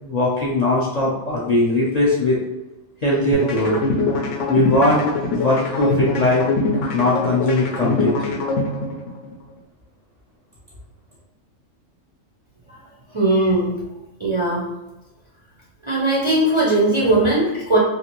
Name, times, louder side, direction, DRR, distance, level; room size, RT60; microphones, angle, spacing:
voice 1, 0.0-2.4 3.0-3.8 4.4-6.4 6.9-8.4, left 1 dB, 50° left, -5 dB, 0.5 m, -20 dB
sound 1, 3.3-9.3, left 3 dB, 70° left, 0.9 m, -23 dB
voice 2, 13.1-13.7 14.2-14.6 15.9-17.8, right 2 dB, 40° right, -6 dB, 0.4 m, -18 dB
3.2 x 2.5 x 3.0 m, 1.0 s
omnidirectional pair, 1.4 m